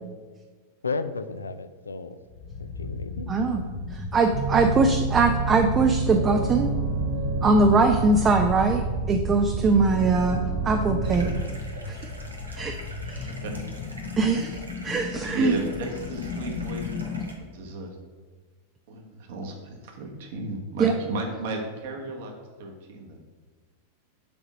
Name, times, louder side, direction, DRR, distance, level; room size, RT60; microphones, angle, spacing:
voice 1, 0.8-2.2 2.6-3.3, left 4 dB, 75° left, 12 dB, 0.4 m, -33 dB
sound 1, 2.3-17.3, left 3 dB, 50° left, 0.8 m, -35 dB
voice 2, 3.3-3.6 3.9-6.7 7.4-8.8 9.1-11.3 12.6-12.7 13.1-13.3 14.2-14.5 14.8-15.5 20.8-20.9, right 3 dB, 20° right, 4 dB, 0.5 m, -21 dB
sound 2, 4.3-11.4, right 4 dB, 40° right, 1.7 m, -28 dB
sound 3, 11.0-17.3, right 1 dB, 80° right, 1.1 m, -45 dB
voice 3, 15.3-17.2 17.5-18.0 18.9-22.3 22.6-23.2, right 2 dB, 55° right, 2 dB, 1.3 m, -34 dB
6.8 x 3.9 x 6.2 m, 1.4 s
figure-of-eight pair, 90°, 0 cm